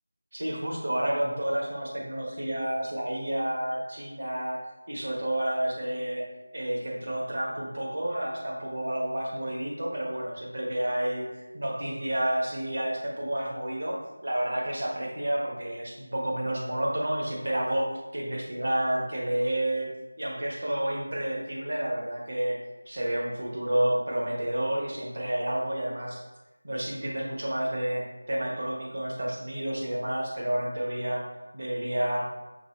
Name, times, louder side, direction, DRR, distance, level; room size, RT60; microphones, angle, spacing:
voice 1, 0.3-6.2 6.5-11.3 11.5-19.9 20.2-22.6 22.9-26.2 26.6-31.3 31.5-32.2, right 1 dB, 55° right, -2 dB, 1.2 m, -30 dB
5.2 x 3.2 x 3.0 m, 1.1 s
figure-of-eight pair, 175°, 0 cm